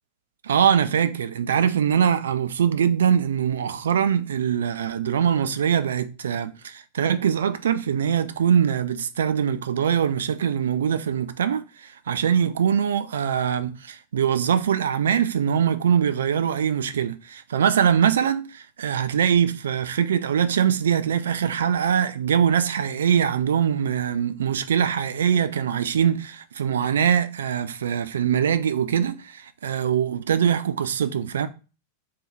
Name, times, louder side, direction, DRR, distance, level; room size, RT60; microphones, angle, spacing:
voice 1, 0.4-31.5, right 8 dB, 65° right, 0.3 m, -23 dB
3.5 x 2.8 x 3.1 m
figure-of-eight pair, 90°, 0 cm